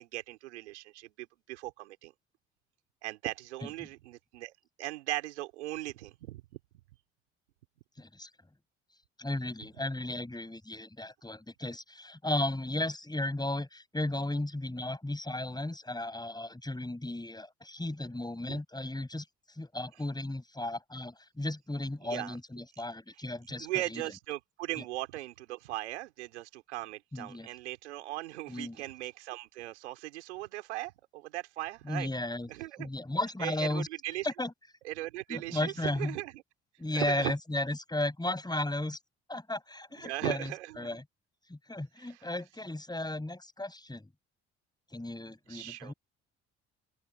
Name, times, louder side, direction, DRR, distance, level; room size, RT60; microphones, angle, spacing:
voice 1, 0.0-2.1 3.0-4.5 4.8-6.4 18.5-18.6 22.0-22.4 23.6-32.1 32.5-32.9 33.4-34.3 34.8-36.4 36.9-37.3 40.0-41.0 42.0-42.3 45.5-45.9, right 17 dB, 90° right, 4.3 m, -38 dB
voice 2, 8.0-8.3 9.2-24.0 27.1-27.5 28.5-28.8 31.8-32.5 32.8-33.9 34.2-34.5 35.3-36.1 36.8-39.0 39.3-41.0 41.5-44.1 44.9-45.9, left 1 dB, 10° left, 7.7 m, -35 dB
open air
hypercardioid pair, 50°, 33 cm